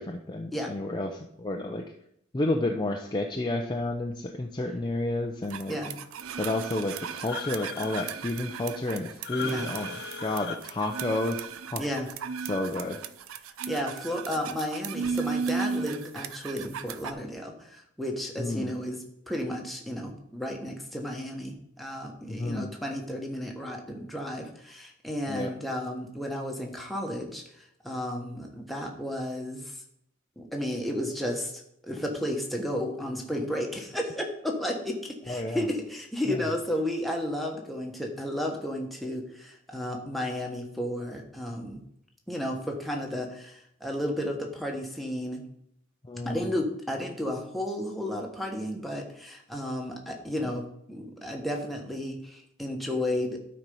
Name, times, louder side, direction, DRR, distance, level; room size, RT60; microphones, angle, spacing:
voice 1, 0.0-1.8 2.3-5.8 6.4-11.8 12.4-13.0 18.4-18.7 22.3-22.7 25.3-25.5 35.3-35.7 36.3-36.5 46.0-46.5, left 2 dB, 20° left, 2 dB, 0.6 m, -31 dB
sound 1, 5.5-17.1, right 6 dB, 80° right, 0.5 m, -35 dB
sound 2, 7.3-8.1 9.2-10.6, left 7 dB, 55° left, 0.9 m, -38 dB
voice 2, 9.4-9.7 11.8-12.1 13.7-27.4 27.8-29.8 30.4-41.8 42.3-45.4 46.2-50.6 50.9-53.4, left 1 dB, ahead, 0 dB, 1.3 m, -33 dB
12.0 x 4.4 x 5.4 m, 0.73 s
head